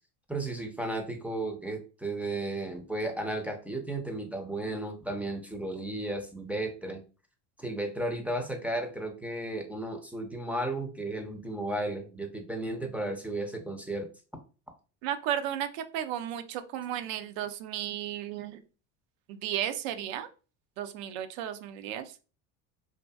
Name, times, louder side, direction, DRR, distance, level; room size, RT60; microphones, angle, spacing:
voice 1, 0.3-7.0 7.6-14.1, right 1 dB, 5° right, 3 dB, 0.4 m, -34 dB
voice 2, 15.0-18.6 19.3-20.3 20.8-22.1, right 10 dB, 80° right, 8 dB, 0.6 m, -34 dB
2.7 x 2.5 x 2.3 m, 0.34 s
supercardioid pair, 105°, 40 cm